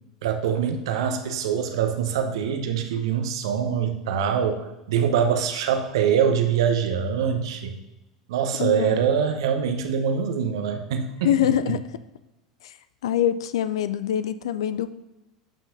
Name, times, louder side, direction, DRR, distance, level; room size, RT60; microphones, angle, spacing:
voice 1, 0.2-7.7 8.3-11.5, right 7 dB, 65° right, 6 dB, 0.8 m, -24 dB
voice 2, 8.6-9.0 11.2-11.8 12.6-12.7 13.0-14.9, left 10 dB, 65° left, 13 dB, 0.3 m, -24 dB
11.5 x 5.8 x 2.7 m, 1.0 s
figure-of-eight pair, 80°, 3 cm